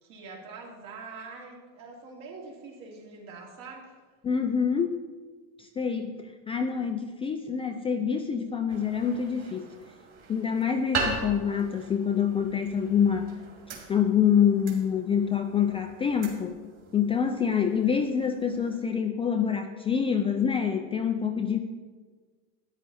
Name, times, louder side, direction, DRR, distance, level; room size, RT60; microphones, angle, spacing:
voice 1, 0.0-4.0, right 4 dB, 65° right, -1 dB, 3.4 m, -44 dB
voice 2, 4.2-5.0 5.6-9.7 10.3-13.4 13.9-16.6 16.9-21.6, left 7 dB, 15° left, 4 dB, 0.3 m, -26 dB
sound 1, 8.7-18.8, right 3 dB, 35° right, 2.6 m, -39 dB
13.0 x 9.7 x 4.2 m, 1.4 s
supercardioid pair, 135°, 41 cm